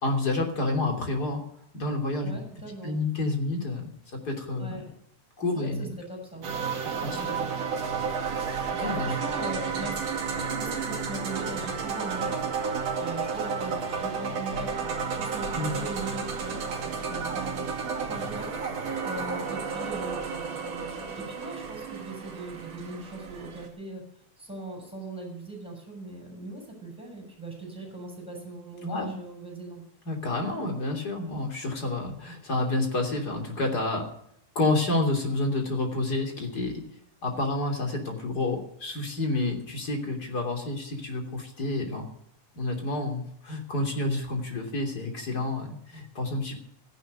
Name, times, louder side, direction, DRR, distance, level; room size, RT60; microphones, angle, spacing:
voice 1, 0.0-1.4 1.7-2.4 2.8-4.8 5.4-5.9 7.0-7.3 8.8-9.2 15.6-15.8 28.8-29.1 30.0-34.1 34.5-36.8 37.2-42.1 42.5-46.6, left 2 dB, 30° left, 2 dB, 3.4 m, -29 dB
voice 2, 2.2-3.0 4.6-4.9 5.5-6.5 6.9-7.5 8.7-18.5 19.0-24.0 24.4-29.8, right 2 dB, ahead, 0 dB, 6.8 m, -40 dB
sound 1, 6.4-23.7, right 5 dB, 55° right, 3.5 m, -32 dB
15.0 x 11.0 x 6.7 m, 0.72 s
omnidirectional pair, 3.6 m